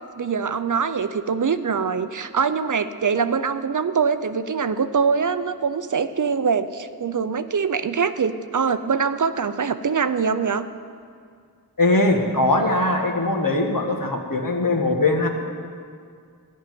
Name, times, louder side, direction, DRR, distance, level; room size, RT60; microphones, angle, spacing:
voice 1, 0.2-10.6, right 6 dB, 55° right, 11 dB, 0.5 m, -23 dB
voice 2, 11.8-15.3, left 2 dB, 60° left, 2 dB, 1.5 m, -21 dB
13.5 x 5.5 x 9.3 m, 2.2 s
wide cardioid pair, 45°, 37 cm